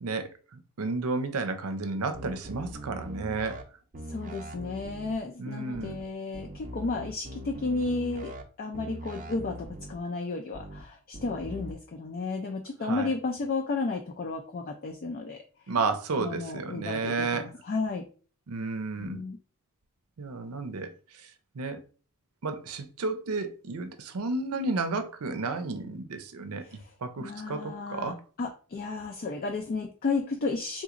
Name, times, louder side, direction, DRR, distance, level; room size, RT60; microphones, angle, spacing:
voice 1, 0.0-3.6 5.4-5.9 12.8-13.1 15.7-17.5 18.5-19.2 20.2-20.9 21.5-21.8 22.4-28.2, right 3 dB, 80° right, 0.6 m, -32 dB
sound 1, 2.1-3.6 3.9-5.1 5.7-6.0 6.3-8.4 8.7-9.9 10.5-10.8 11.1-11.7, right 1 dB, 40° right, 0.5 m, -41 dB
voice 2, 4.1-15.4 16.2-18.0 19.0-19.4 26.6-26.9 27.2-28.1 28.4-30.8, left 3 dB, 45° left, 0.4 m, -33 dB
3.8 x 2.9 x 2.5 m
head